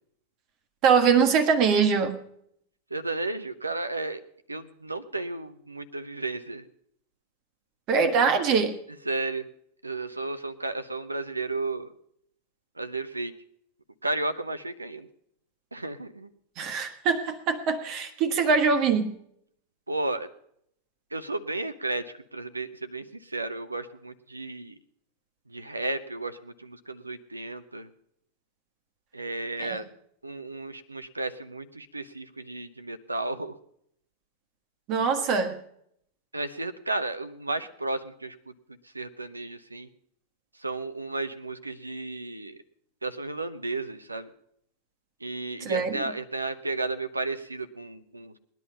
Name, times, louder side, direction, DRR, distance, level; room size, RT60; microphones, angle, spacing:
voice 1, 0.8-2.2 7.9-8.8 16.6-19.1 29.6-29.8 34.9-35.6 45.6-46.0, right 5 dB, 40° right, 9 dB, 1.4 m, -23 dB
voice 2, 2.9-4.2 4.5-6.7 9.1-9.4 9.8-11.9 12.8-13.3 14.0-15.1 15.7-16.3 19.9-20.3 21.1-24.7 25.5-27.9 29.1-29.9 30.2-33.5 36.3-38.5 38.9-39.9 40.6-42.6 43.0-44.3 45.2-48.3, right 2 dB, 80° right, 11 dB, 0.8 m, -33 dB
20.0 x 10.5 x 5.7 m, 0.72 s
figure-of-eight pair, 90°, 0 cm